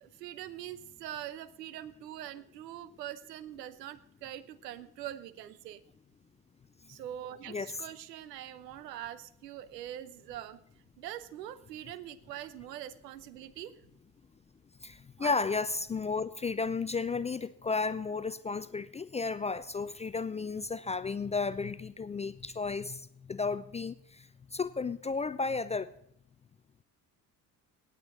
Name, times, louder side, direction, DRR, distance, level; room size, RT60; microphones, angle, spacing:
voice 1, 0.0-5.8 6.9-10.6 11.0-13.7 15.2-15.3, right 12 dB, 80° right, 16 dB, 0.8 m, -43 dB
voice 2, 14.8-25.9, left 4 dB, 15° left, 15 dB, 0.4 m, -33 dB
18.0 x 8.3 x 3.8 m, 0.71 s
figure-of-eight pair, 55°, 49 cm